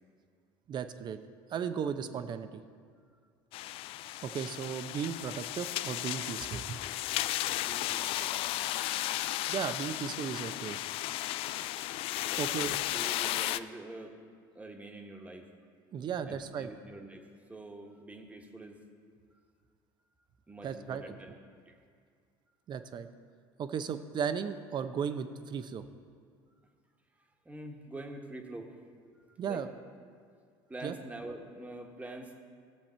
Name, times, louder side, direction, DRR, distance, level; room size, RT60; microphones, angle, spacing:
voice 1, 0.7-1.2 1.5-2.5 4.2-6.8 9.5-10.8 12.4-12.7 15.9-16.7 20.6-21.0 22.7-23.1 23.6-25.8 29.4-29.7 30.8-30.9, right 7 dB, 45° right, 10 dB, 0.7 m, -35 dB
sound 1, 3.5-13.6, left 15 dB, 60° left, 0.4 m, -34 dB
voice 2, 7.6-8.3 12.3-14.2 14.5-15.5 16.2-18.8 20.5-21.3 21.7-21.8 27.4-28.7 29.1-29.6 30.7-32.3, right 2 dB, 15° right, 3 dB, 1.5 m, -45 dB
16.0 x 7.1 x 4.5 m, 2.1 s
supercardioid pair, 90°, 11 cm